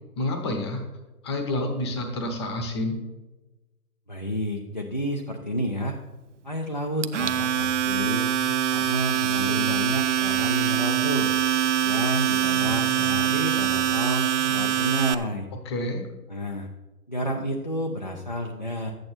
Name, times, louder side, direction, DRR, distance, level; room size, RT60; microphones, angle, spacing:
voice 1, 0.2-0.8 1.2-3.0 15.6-16.1, left 1 dB, 15° left, 5 dB, 0.8 m, -28 dB
voice 2, 4.1-6.0 6.4-8.3 8.7-11.3 11.8-15.5 16.3-16.7 17.1-18.9, equal, 30° left, 0 dB, 0.4 m, -30 dB
Domestic sounds home sounds, 7.0-15.1, right 10 dB, 50° right, 0.5 m, -24 dB
11.5 x 8.7 x 4.3 m, 1.1 s
hypercardioid pair, 160°, 48 cm